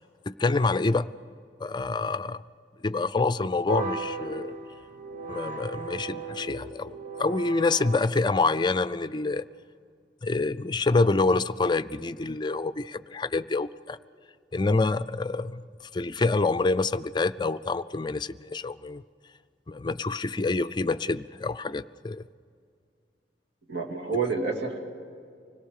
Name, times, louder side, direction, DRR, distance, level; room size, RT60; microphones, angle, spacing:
voice 1, 0.3-1.1 1.6-2.4 2.8-4.5 5.2-6.9 7.2-9.4 10.2-14.0 14.5-15.6 15.9-19.0 19.7-22.2, left 3 dB, 25° left, 14 dB, 0.4 m, -26 dB
sound 1, 3.7-8.1, right 4 dB, 45° right, 1.9 m, -36 dB
voice 2, 23.7-24.8, right 4 dB, 70° right, -1 dB, 2.3 m, -28 dB
25.0 x 17.0 x 6.5 m, 2.3 s
head